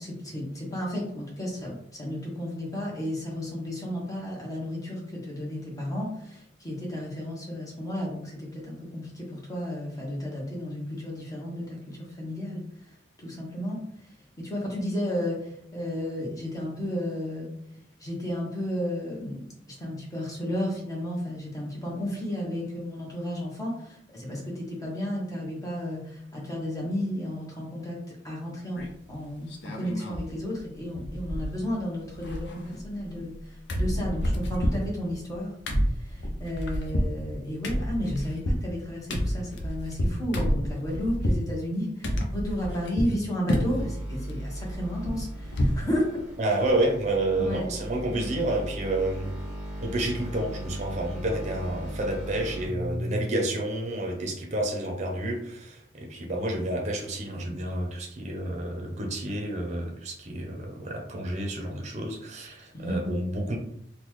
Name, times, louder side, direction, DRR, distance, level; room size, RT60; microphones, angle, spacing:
voice 1, 0.0-12.9 13.2-17.5 18.0-35.5 35.8-46.6 47.4-47.7 62.7-63.0, equal, 20° left, -3 dB, 1.1 m, -33 dB
sound 1, 28.8-29.1 29.5-30.3 30.6-30.7 30.9-31.8 32.1-33.4 33.7-41.5 42.0-43.2 43.5-43.9 44.3-45.9 46.2-46.3 46.7-46.8, equal, 70° left, 0.6 m, -29 dB
sound 2, 43.5-53.3, equal, 5° right, 1.0 m, -37 dB
voice 2, 46.4-49.3 49.8-63.6, right 1 dB, 40° right, 1 dB, 0.7 m, -29 dB
3.8 x 2.3 x 3.1 m, 0.73 s
head